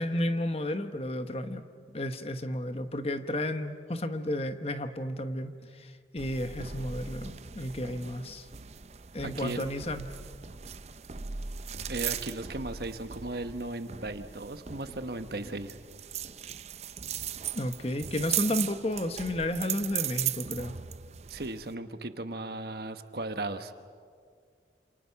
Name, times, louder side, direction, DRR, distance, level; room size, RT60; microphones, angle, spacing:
voice 1, 0.0-1.6 1.9-8.5 9.1-10.1 17.5-20.8, left 1 dB, 35° left, 8 dB, 1.1 m, -32 dB
sound 1, 6.2-21.7, right 9 dB, 40° right, 0.5 m, -38 dB
voice 2, 9.2-9.6 11.9-15.8 21.3-23.7, right 2 dB, 65° right, 9 dB, 1.2 m, -36 dB
28.0 x 27.5 x 5.9 m, 2.1 s
head